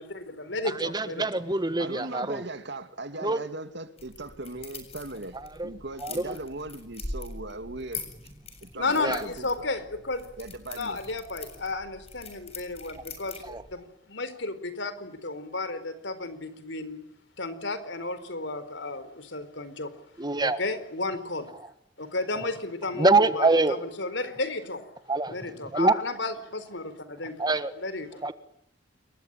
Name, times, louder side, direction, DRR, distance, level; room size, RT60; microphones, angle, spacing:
voice 1, 0.0-1.2 8.7-10.3 10.7-17.0 17.4-19.9 20.4-21.5 22.0-24.8 25.3-27.4 27.8-28.2, left 3 dB, 70° left, 4.4 m, -33 dB
voice 2, 0.6-2.4 3.2-3.4 5.4-5.7 6.0-6.4 9.0-9.2 13.5-13.6 20.2-20.6 23.0-23.9 25.1-25.3 25.7-26.0 27.4-27.7 28.2-28.3, right 3 dB, 25° right, 1.5 m, -25 dB
voice 3, 1.8-5.4 5.6-8.0 8.6-9.7 10.4-11.0, right 2 dB, 65° right, 2.8 m, -38 dB
sound 1, 4.0-13.7, left 3 dB, 35° left, 7.4 m, -43 dB
29.0 x 22.5 x 9.1 m
head